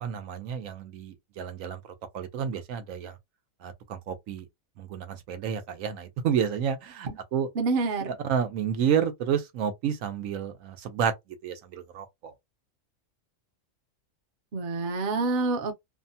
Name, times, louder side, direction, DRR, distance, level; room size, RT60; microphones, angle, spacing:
voice 1, 0.0-3.2 3.6-4.5 4.8-7.5 8.1-11.1 11.4-12.3, right 8 dB, 80° right, 1.0 m, -30 dB
voice 2, 7.6-8.1 14.5-15.7, right 3 dB, 50° right, 0.8 m, -27 dB
2.7 x 2.1 x 2.6 m
omnidirectional pair, 1.4 m